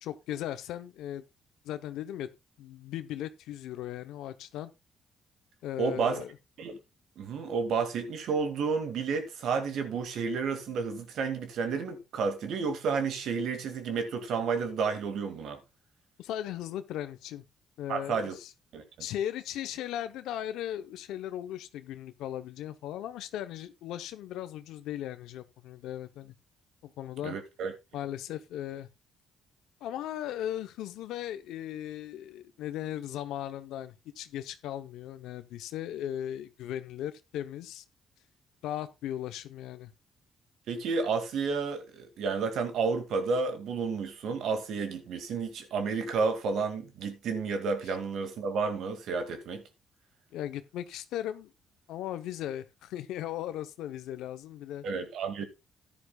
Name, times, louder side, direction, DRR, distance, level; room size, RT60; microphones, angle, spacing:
voice 1, 0.0-1.2 1.6-2.3 2.6-4.7 5.6-6.4 16.2-17.4 17.8-18.5 19.0-26.3 26.8-27.4 27.9-28.9 29.8-37.8 38.6-39.9 47.9-48.0 50.3-51.5 51.9-54.8, left 11 dB, 90° left, 0.8 m, -37 dB
voice 2, 5.8-6.2 6.6-6.8 7.2-15.6 17.9-18.3 18.7-18.8 27.2-27.7 40.7-49.6 54.8-55.5, right 5 dB, 75° right, 2.1 m, -31 dB
14.5 x 10.5 x 2.3 m
cardioid pair, 90°, 0 cm